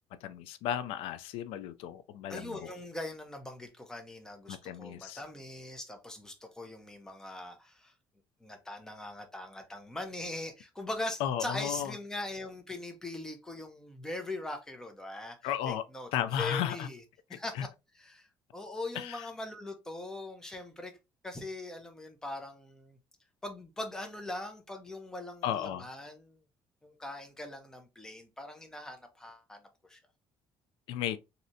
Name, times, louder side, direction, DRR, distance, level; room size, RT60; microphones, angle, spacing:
voice 1, 0.2-2.7 4.5-5.2 11.2-11.9 15.4-15.8 16.1-16.9 17.5-17.7 19.0-19.3 25.4-25.9 30.9-31.2, left 10 dB, 85° left, 0.4 m, -34 dB
voice 2, 2.3-7.9 8.4-15.4 15.7-16.1 16.3-17.0 17.3-17.7 18.0-20.9 21.2-23.0 23.4-26.4 26.8-29.6 29.9-30.0, left 2 dB, 5° left, 0.5 m, -41 dB
3.1 x 2.7 x 2.6 m
cardioid pair, 170°, 9 cm